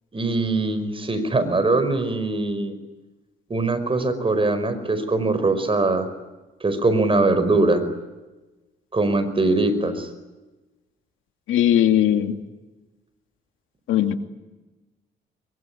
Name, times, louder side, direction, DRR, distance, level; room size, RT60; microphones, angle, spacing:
voice 1, 0.1-2.8 3.5-6.1 6.6-7.9 8.9-10.1, right 2 dB, 25° right, 11 dB, 5.2 m, -22 dB
voice 2, 11.5-12.4 13.9-14.2, left 11 dB, 85° left, 7 dB, 2.2 m, -19 dB
24.0 x 23.0 x 9.8 m, 1.1 s
cardioid pair, 90°, 20 cm